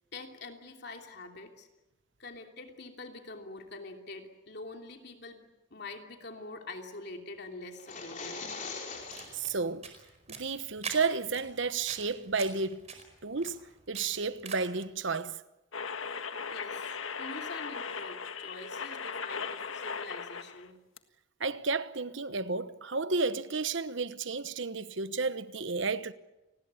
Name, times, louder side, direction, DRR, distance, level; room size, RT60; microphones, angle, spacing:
voice 1, 0.1-1.7 2.2-8.4 16.5-20.8, left 2 dB, 55° left, 3.0 m, -45 dB
sound 1, 7.7-9.5, left 4 dB, 40° left, 5.3 m, -41 dB
sound 2, 8.9-14.9, right 5 dB, 35° right, 4.8 m, -46 dB
voice 2, 9.3-9.9 10.3-12.8 13.2-15.4 21.4-26.1, right 4 dB, 65° right, 1.1 m, -32 dB
sound 3, 15.7-20.7 21.0-21.1, left 5 dB, 85° left, 1.7 m, -38 dB
29.5 x 20.5 x 8.4 m
head